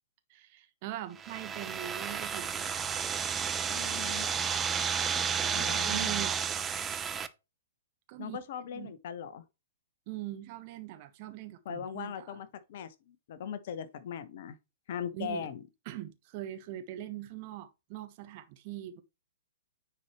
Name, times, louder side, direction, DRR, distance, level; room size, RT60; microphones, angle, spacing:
voice 1, 0.3-3.1 5.4-6.3 8.1-8.4 8.7-8.9 10.1-12.4 15.1-15.5 15.8-19.0, right 13 dB, 40° right, 1.1 m, -42 dB
sound 1, 1.2-7.3, right 7 dB, 15° right, 0.6 m, -32 dB
voice 2, 3.7-4.3 5.5-6.1 8.2-9.4 11.6-14.6 14.9-15.6, left 8 dB, 50° left, 1.1 m, -39 dB
9.7 x 4.6 x 3.0 m
figure-of-eight pair, 110°, 0 cm